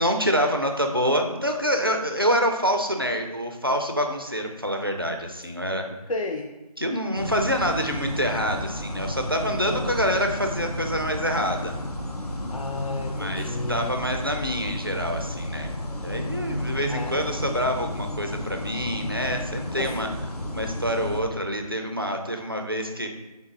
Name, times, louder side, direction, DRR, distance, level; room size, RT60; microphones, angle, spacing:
voice 1, 0.0-5.9 6.8-11.8 13.1-15.7 16.0-20.1 20.5-23.1, equal, 35° right, 4 dB, 0.4 m, -26 dB
voice 2, 6.1-6.5 9.7-10.0 12.5-14.0 16.9-17.5 19.8-20.0 22.1-22.2, left 2 dB, 60° left, 3 dB, 0.4 m, -32 dB
sound 1, 7.2-21.2, left 1 dB, 75° left, 0.8 m, -32 dB
3.8 x 3.6 x 3.9 m, 1.1 s
figure-of-eight pair, 175°, 20 cm